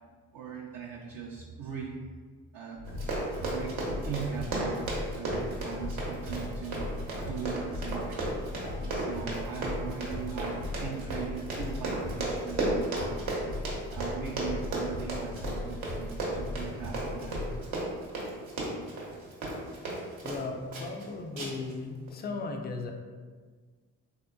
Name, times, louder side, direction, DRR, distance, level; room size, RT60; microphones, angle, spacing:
voice 1, 0.3-2.0 2.5-2.9 3.4-3.7 4.0-8.6 8.9-12.8 13.0-13.4 13.9-17.7, right 7 dB, 50° right, -2 dB, 0.5 m, -40 dB
sound 1, 2.8-17.6, left 1 dB, 85° left, 0.8 m, -39 dB
Run, 2.9-20.4 20.7-21.0 21.4-21.7 22.1-22.2, right 2 dB, 70° right, 0.9 m, -34 dB
voice 2, 20.2-22.9, left 3 dB, 25° left, 4 dB, 0.3 m, -36 dB
3.5 x 2.7 x 2.2 m, 1.5 s
hypercardioid pair, 45°, 48 cm